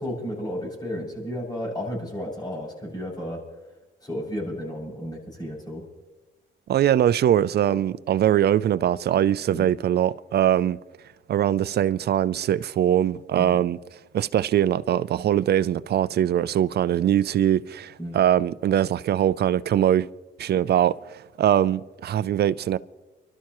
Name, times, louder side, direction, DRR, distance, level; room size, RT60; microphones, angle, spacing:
voice 1, 0.0-3.4 4.0-5.8 9.5-9.7 13.3-13.7 18.0-18.2, equal, 20° left, 6.6 m, -33 dB
voice 2, 6.7-10.8 11.3-13.8 14.1-20.1 20.4-22.8, right 10 dB, 55° right, 0.5 m, -22 dB
29.5 x 12.5 x 3.1 m
cardioid pair, 90°, 20 cm